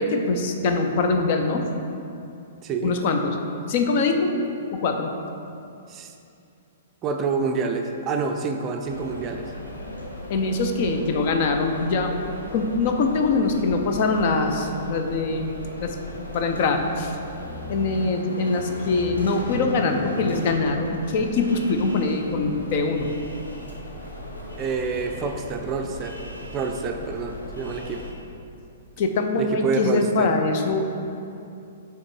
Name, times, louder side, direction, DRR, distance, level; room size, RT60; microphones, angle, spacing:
voice 1, 0.0-1.7 2.8-3.4 3.7-4.3 4.7-5.1 10.3-15.5 15.8-16.0 16.3-17.2 17.7-23.1 29.0-30.9, left 3 dB, 45° left, 5 dB, 0.5 m, -23 dB
voice 2, 2.6-2.9 5.9-6.1 7.0-9.5 24.6-26.2 26.5-28.1 29.3-30.3, right 4 dB, 25° right, 4 dB, 0.4 m, -27 dB
sound 1, 8.8-28.1, left 1 dB, 85° left, 0.9 m, -36 dB
6.3 x 3.6 x 4.5 m, 2.6 s
figure-of-eight pair, 115°, 0 cm